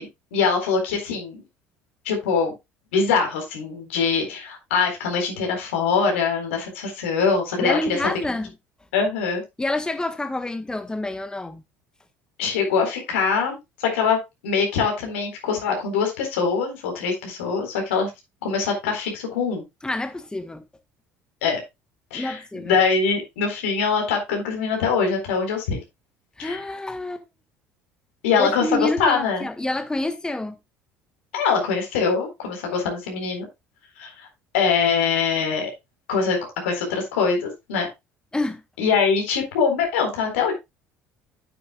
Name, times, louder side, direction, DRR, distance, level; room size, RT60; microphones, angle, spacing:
voice 1, 0.0-1.4 2.0-2.5 2.9-7.8 8.9-9.4 12.4-18.1 18.4-19.6 21.4-21.6 22.1-25.8 26.4-26.6 28.2-29.5 31.3-33.5 34.0-34.3 34.5-35.7 36.1-37.9 38.8-40.5, left 5 dB, 80° left, 4.0 m, -23 dB
voice 2, 7.6-8.5 9.6-11.6 19.8-20.6 22.1-22.8 26.4-27.2 28.4-30.6 38.3-38.6, left 2 dB, 10° left, 1.5 m, -27 dB
9.5 x 9.2 x 2.3 m
hypercardioid pair, 65°, 6 cm